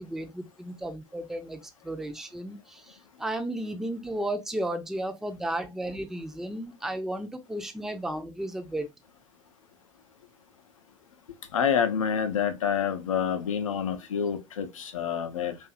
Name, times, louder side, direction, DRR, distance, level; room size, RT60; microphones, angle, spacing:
voice 1, 0.0-8.9, right 1 dB, 5° right, 0.5 m, -34 dB
voice 2, 11.5-15.6, left 7 dB, 80° left, 0.6 m, -27 dB
2.7 x 2.4 x 2.4 m
figure-of-eight pair, 80°, 17 cm